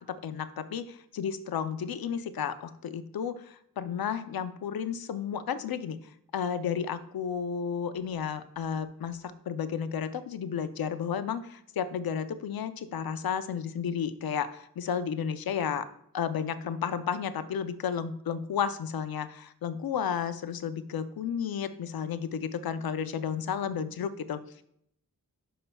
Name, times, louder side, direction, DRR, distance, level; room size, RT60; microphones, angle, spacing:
voice 1, 0.0-6.0 6.3-15.9 16.1-24.4, left 7 dB, 75° left, 11 dB, 0.6 m, -32 dB
11.0 x 5.5 x 2.3 m, 0.70 s
wide cardioid pair, 175°, 36 cm